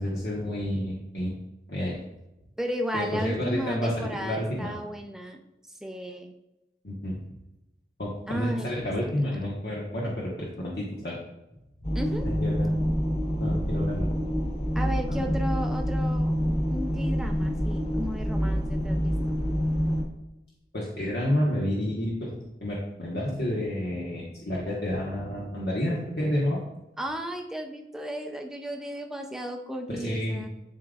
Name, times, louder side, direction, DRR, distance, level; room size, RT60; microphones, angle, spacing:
voice 1, 0.0-1.4 1.7-2.0 2.9-3.9 4.2-4.7 6.8-7.3 8.0-11.2 12.2-12.7 13.4-14.1 15.1-15.3 20.7-26.6 30.0-30.5, left 1 dB, 60° left, -5 dB, 1.2 m, -30 dB
voice 2, 2.6-5.4 5.7-6.3 8.3-9.4 11.9-12.3 14.7-16.4 16.7-19.4 27.0-30.5, equal, 5° right, 2 dB, 0.5 m, -34 dB
sound 1, 11.8-20.0, equal, 35° left, 1.1 m, -27 dB
11.5 x 3.8 x 2.4 m, 0.94 s
head